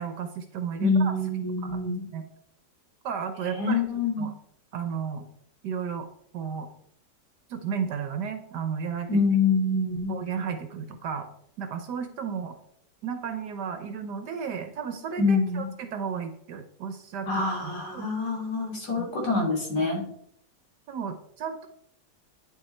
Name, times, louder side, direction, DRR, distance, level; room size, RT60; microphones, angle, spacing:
voice 1, 0.0-1.1 1.6-1.8 2.1-2.2 3.0-3.8 4.2-4.3 4.7-5.2 5.6-6.1 6.3-6.7 7.5-9.1 10.1-11.3 11.6-12.6 13.0-17.3 17.6-18.1 19.0-19.1 19.8-19.9 20.9-21.7, right 6 dB, 75° right, 7 dB, 1.4 m, -33 dB
voice 2, 0.8-2.0 3.5-4.3 9.1-10.1 15.2-15.7 17.3-20.0, left 3 dB, 65° left, 0 dB, 3.5 m, -25 dB
9.6 x 7.1 x 4.3 m, 0.68 s
omnidirectional pair, 1.9 m